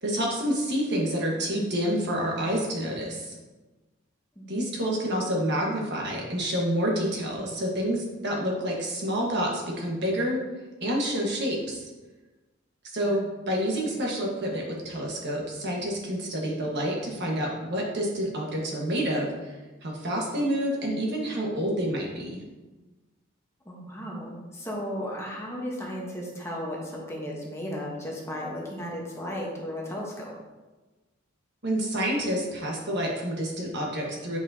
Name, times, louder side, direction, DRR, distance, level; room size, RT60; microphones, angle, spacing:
voice 1, 0.0-3.3 4.5-10.4 10.8-11.8 12.9-19.6 19.8-22.4 31.6-34.4, equal, 60° right, -1 dB, 1.4 m, -28 dB
voice 2, 4.4-4.8 13.0-13.2 16.7-16.8 23.6-30.4, equal, 15° left, -3 dB, 1.0 m, -35 dB
8.1 x 4.7 x 2.7 m, 1.2 s
head